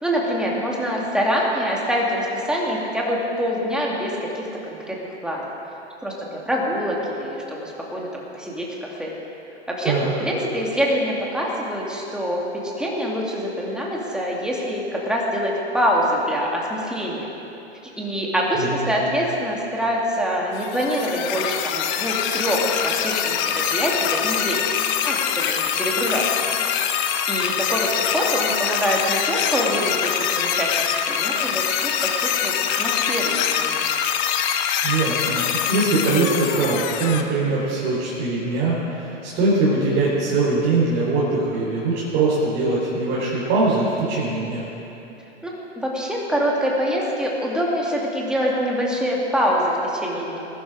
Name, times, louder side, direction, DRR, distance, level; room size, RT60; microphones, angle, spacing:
voice 1, 0.0-5.5 6.0-9.1 9.7-9.9 10.2-17.3 17.8-24.6 25.0-26.3 27.3-33.9 45.4-50.4, equal, ahead, -3 dB, 2.5 m, -25 dB
voice 2, 18.5-18.9 34.8-44.6, right 3 dB, 35° right, -7 dB, 4.1 m, -22 dB
sound 1, 20.5-37.2, left 8 dB, 35° left, 1.0 m, -24 dB
20.5 x 11.5 x 4.9 m, 3.0 s
hypercardioid pair, 120°, 34 cm